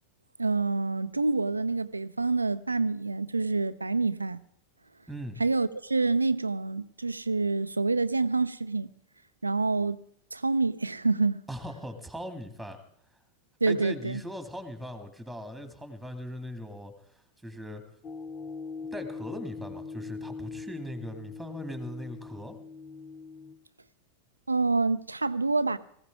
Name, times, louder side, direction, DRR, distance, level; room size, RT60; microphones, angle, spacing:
voice 1, 0.4-4.4 5.4-8.9 9.4-10.0 10.3-11.4 13.6-14.2 24.5-25.8, right 3 dB, 80° right, 0.6 m, -27 dB
voice 2, 5.1-5.4 11.5-12.8 13.7-17.8 18.8-22.6, equal, ahead, 2.2 m, -40 dB
sound 1, 18.0-23.5, left 4 dB, 25° left, 1.0 m, -41 dB
19.0 x 16.0 x 3.6 m
figure-of-eight pair, 90°, 0 cm